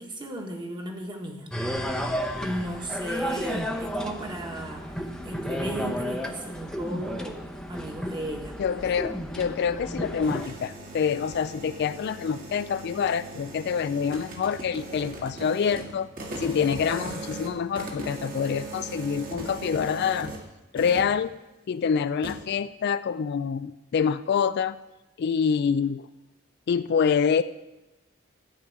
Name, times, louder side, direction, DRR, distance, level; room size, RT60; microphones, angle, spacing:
voice 1, 0.0-1.5 2.4-8.8, equal, 20° right, 2 dB, 1.5 m, -35 dB
sound 1, 1.5-10.5, equal, 5° left, 0.8 m, -32 dB
voice 2, 8.6-16.1 16.4-20.4 20.7-21.3 21.7-24.8 25.2-26.1 26.7-27.4, left 6 dB, 55° left, 14 dB, 0.3 m, -26 dB
sound 2, 10.0-20.5 20.7-21.2 22.2-22.4, right 2 dB, 45° right, 1.8 m, -39 dB
12.5 x 5.1 x 8.5 m, 1.0 s
head